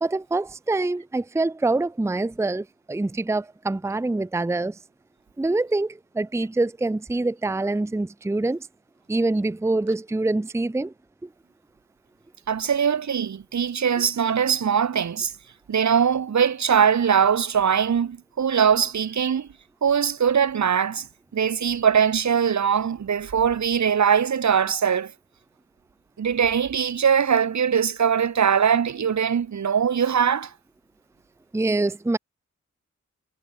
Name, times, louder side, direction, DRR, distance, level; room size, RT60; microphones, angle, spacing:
voice 1, 0.0-4.8 5.4-8.7 9.1-10.9 11.2-11.3 31.5-32.2, right 2 dB, 10° right, 0.6 m, -25 dB
voice 2, 12.5-15.3 15.7-19.5 19.8-21.1 21.3-25.1 26.2-30.5, right 7 dB, 70° right, 1.5 m, -21 dB
wide cardioid pair, 130°, 30 cm